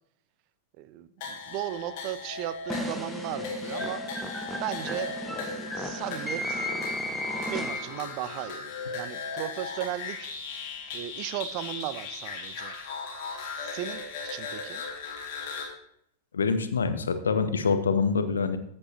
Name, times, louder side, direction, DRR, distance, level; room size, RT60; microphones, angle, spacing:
voice 1, 0.8-4.0 4.6-5.1 5.4-6.7 7.5-10.3 10.9-12.7 13.6-14.8, right 13 dB, 45° right, 14 dB, 0.5 m, -36 dB
sound 1, 1.2-15.6, left 4 dB, 45° left, 2.1 m, -37 dB
sound 2, 2.7-8.1, equal, ahead, 0.9 m, -34 dB
voice 2, 16.3-18.6, left 5 dB, 70° left, 10 dB, 0.8 m, -25 dB
14.0 x 7.6 x 2.9 m, 0.72 s
figure-of-eight pair, 90°, 0 cm